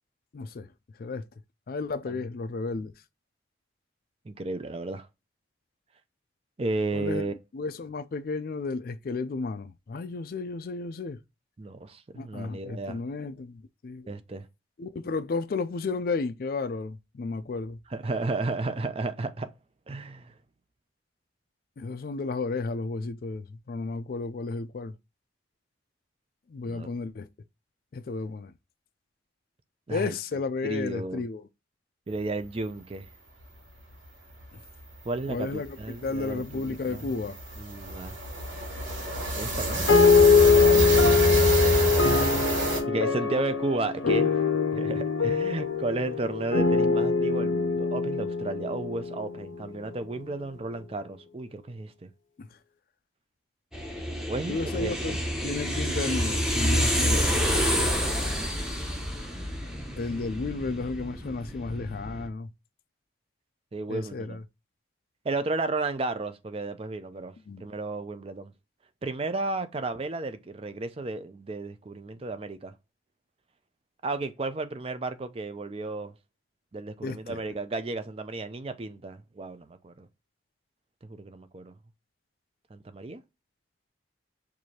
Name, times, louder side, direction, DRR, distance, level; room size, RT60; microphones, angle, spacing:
voice 1, 0.3-0.7 1.0-1.3 1.7-2.9 6.9-11.2 12.1-14.1 14.8-17.8 21.8-24.9 26.5-27.3 27.9-28.5 29.9-31.5 34.5-34.6 35.3-35.8 36.0-37.4 40.8-41.4 52.4-52.5 54.5-55.2 55.4-57.5 60.0-62.5 63.9-64.4 67.5-67.6 77.0-77.4, left 3 dB, 50° left, 0.4 m, -33 dB
voice 2, 4.3-5.1 6.6-7.3 11.6-13.0 14.1-14.5 17.9-19.5 19.9-20.3 26.7-26.9 29.9-30.1 30.6-31.2 32.1-33.1 35.0-37.3 37.6-38.2 39.4-39.9 40.4-40.9 42.9-44.3 44.7-52.1 54.3-55.2 63.7-64.4 65.2-67.3 67.6-68.5 69.0-72.7 74.0-76.1 76.7-80.1 81.0-81.7 82.7-83.2, right 3 dB, 30° right, 0.4 m, -33 dB
sound 1, 34.4-34.5 34.8-35.0 35.3-42.8, right 1 dB, 80° right, 1.6 m, -27 dB
sound 2, 39.9-49.6, left 5 dB, 85° left, 0.6 m, -23 dB
sound 3, 53.7-62.3, equal, 5° right, 0.8 m, -28 dB
4.6 x 2.6 x 2.8 m
head